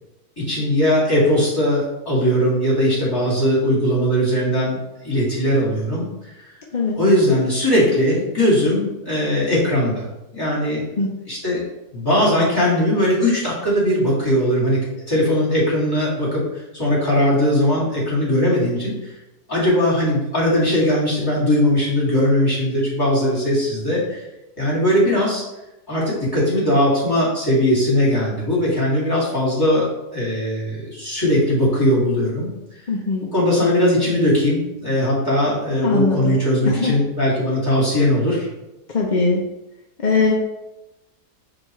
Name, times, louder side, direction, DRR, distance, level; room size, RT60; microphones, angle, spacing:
voice 1, 0.4-4.8 5.0-6.1 7.0-10.0 10.3-10.8 11.3-11.6 11.9-16.4 16.7-18.9 19.5-24.2 24.6-25.4 25.9-29.9 30.1-32.5 33.3-38.5, equal, 15° left, -8 dB, 2.5 m, -19 dB
voice 2, 32.9-33.3 35.8-36.3 36.6-36.9 38.9-39.4 40.0-40.3, left 4 dB, 45° left, -2 dB, 0.6 m, -20 dB
10.0 x 3.6 x 3.1 m, 0.95 s
omnidirectional pair, 1.8 m